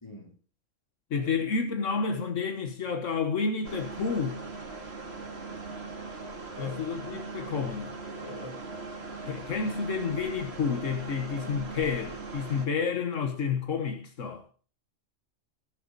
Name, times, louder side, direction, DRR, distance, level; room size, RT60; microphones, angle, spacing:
voice 1, 0.0-0.3 1.2-1.4 6.5-6.8 8.2-8.6, left 1 dB, 20° left, 3.4 m, -44 dB
voice 2, 1.1-4.4 6.6-7.9 9.2-14.4, left 5 dB, 80° left, 1.6 m, -30 dB
sound 1, 3.6-12.7, right 3 dB, 55° right, 2.2 m, -40 dB
18.5 x 7.3 x 4.1 m
omnidirectional pair, 1.3 m